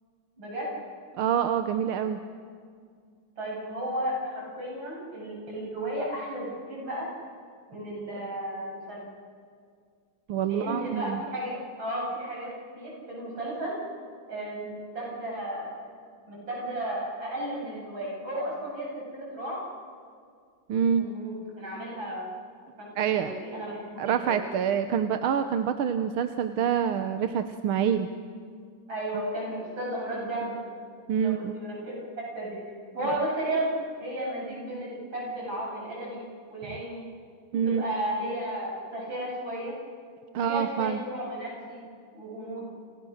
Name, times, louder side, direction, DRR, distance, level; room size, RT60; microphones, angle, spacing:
voice 1, 0.4-0.7 3.4-7.1 7.7-9.0 10.4-13.8 14.3-15.8 16.3-19.6 20.9-22.3 22.8-24.4 28.9-30.6 31.2-31.9 32.3-32.6 33.0-33.7 34.0-36.2 36.5-37.0 37.5-39.7 40.3-41.8 42.1-42.7, right 1 dB, 60° right, -3 dB, 8.7 m, -34 dB
voice 2, 1.2-2.2 10.3-11.2 20.7-21.1 23.0-23.4 24.0-28.1 31.1-31.5 37.5-37.8 40.3-41.0, right 8 dB, 75° right, 8 dB, 1.7 m, -26 dB
30.0 x 29.0 x 6.5 m, 2.1 s
omnidirectional pair, 2.4 m